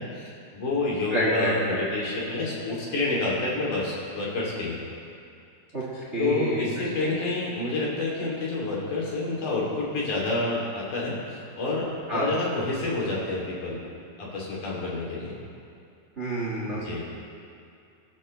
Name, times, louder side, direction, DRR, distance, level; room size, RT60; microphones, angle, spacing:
voice 1, 0.0-4.8 6.2-13.8 14.2-15.4 16.8-17.0, left 2 dB, 55° left, -5 dB, 4.4 m, -28 dB
voice 2, 1.1-1.8 5.7-5.8 6.1-7.1 12.1-12.3 16.2-17.0, right 1 dB, 35° right, -4 dB, 1.1 m, -28 dB
25.0 x 11.0 x 3.3 m, 2.5 s
omnidirectional pair, 4.4 m